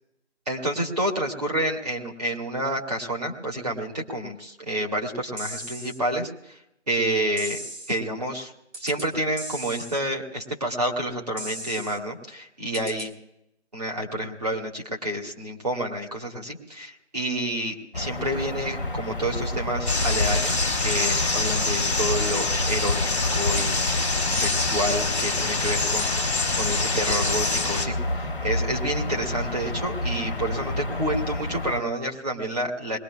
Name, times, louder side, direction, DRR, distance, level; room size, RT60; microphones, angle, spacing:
voice 1, 0.5-6.6 6.9-7.6 7.9-8.5 8.8-13.1 13.7-33.0, right 1 dB, 35° right, -1 dB, 2.1 m, -29 dB
sound 1, 5.4-6.0 7.4-8.0 8.7-9.1 9.4-10.0 11.4-12.0 12.7-13.1, right 1 dB, 75° right, 2.2 m, -37 dB
sound 2, 17.9-31.8, left 1 dB, 50° left, 1.5 m, -30 dB
sound 3, 19.9-27.9, left 3 dB, 25° left, 1.5 m, -25 dB
21.5 x 19.5 x 2.4 m, 0.79 s
figure-of-eight pair, 175°, 34 cm